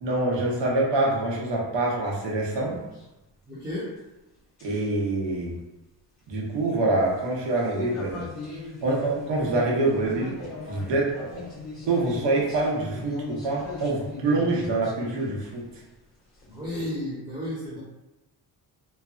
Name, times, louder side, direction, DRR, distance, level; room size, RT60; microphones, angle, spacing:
voice 1, 0.0-2.8 4.6-5.6 6.3-8.2 8.8-11.4 11.9-15.6, right 2 dB, 85° right, -3 dB, 0.9 m, -26 dB
sound 1, 2.6-3.0 4.6-5.0 7.2-15.9 16.4-16.9, left 3 dB, 40° left, 1.3 m, -39 dB
voice 2, 3.5-3.9 16.5-17.8, left 1 dB, 10° right, -9 dB, 0.8 m, -33 dB
3.2 x 2.0 x 2.4 m, 0.99 s
cardioid pair, 145°, 42 cm